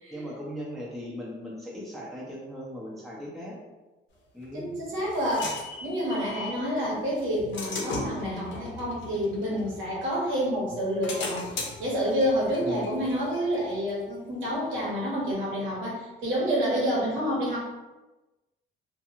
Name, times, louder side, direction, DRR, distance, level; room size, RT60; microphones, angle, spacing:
voice 1, 0.1-3.6 4.3-4.7 12.6-13.0, left 1 dB, ahead, -5 dB, 0.6 m, -38 dB
sound 1, 4.4-6.6 7.2-10.3 10.7-14.1, left 3 dB, 70° left, 0.7 m, -38 dB
voice 2, 4.5-5.5 5.8-17.6, equal, 85° right, -5 dB, 1.1 m, -28 dB
2.5 x 2.2 x 2.9 m, 1.1 s
cardioid pair, 90°, 20 cm